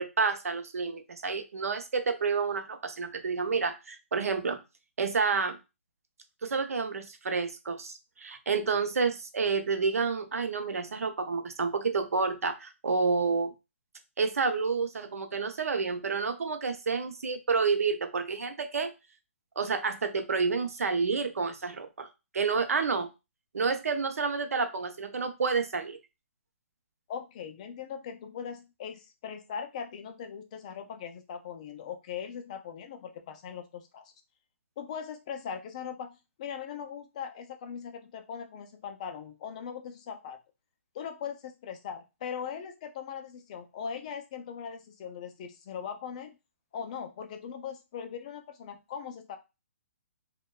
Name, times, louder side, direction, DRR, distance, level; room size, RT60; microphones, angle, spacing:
voice 1, 0.0-4.6 5.0-5.6 6.4-13.5 14.2-18.9 19.6-22.1 22.3-23.1 23.5-26.0, right 4 dB, 90° right, 8 dB, 0.5 m, -29 dB
voice 2, 27.1-34.1 34.8-40.4 40.9-46.4 46.7-49.4, left 7 dB, 30° left, 6 dB, 0.3 m, -40 dB
2.6 x 2.1 x 2.2 m, 0.26 s
hypercardioid pair, 160°, 8 cm